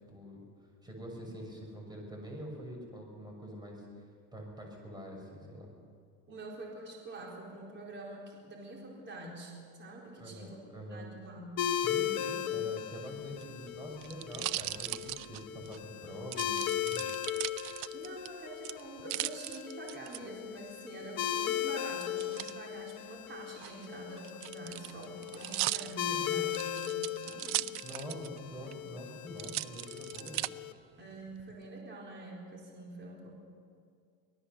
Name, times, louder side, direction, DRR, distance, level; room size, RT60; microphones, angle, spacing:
voice 1, 0.1-3.9 4.3-5.7 10.2-11.1 11.7-17.1 26.1-26.5 27.8-30.4, equal, 10° right, 1 dB, 6.2 m, -45 dB
voice 2, 6.3-10.6 10.9-11.7 12.3-12.5 13.0-13.2 17.9-27.6 31.0-33.3, right 2 dB, 30° right, -2 dB, 4.2 m, -46 dB
sound 1, 11.6-30.7, left 11 dB, 55° left, 1.1 m, -37 dB
sound 2, 13.3-15.8 16.3-18.3 18.6-20.2 22.0-22.5 23.5-28.4 28.7-28.8 29.4-30.5 31.1-31.7, right 19 dB, 80° right, 0.6 m, -38 dB
25.0 x 18.5 x 6.9 m, 2.3 s
cardioid pair, 145°, 39 cm